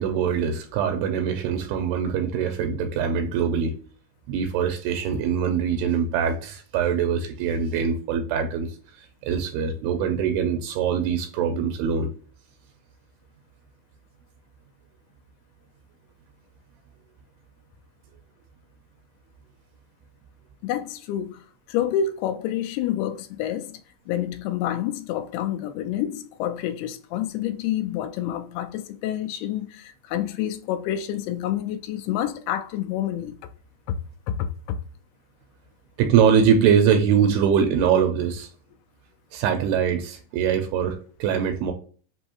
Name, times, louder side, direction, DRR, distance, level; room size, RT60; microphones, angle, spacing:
voice 1, 0.0-3.7 4.3-12.1 36.0-38.5 39.3-41.7, right 7 dB, 80° right, 2.5 m, -23 dB
voice 2, 20.6-23.8 24.1-33.4 33.9-34.0 34.3-34.8, left 10 dB, 85° left, 2.4 m, -28 dB
6.2 x 2.7 x 2.9 m
omnidirectional pair, 4.7 m